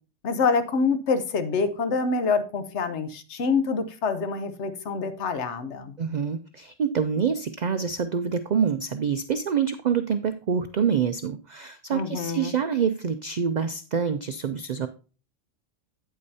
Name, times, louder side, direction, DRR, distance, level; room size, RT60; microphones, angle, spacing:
voice 1, 0.2-5.9 11.9-12.5, left 4 dB, 65° left, 10 dB, 1.1 m, -26 dB
voice 2, 6.0-14.9, right 7 dB, 70° right, 10 dB, 0.4 m, -26 dB
8.8 x 8.5 x 2.7 m, 0.35 s
omnidirectional pair, 1.3 m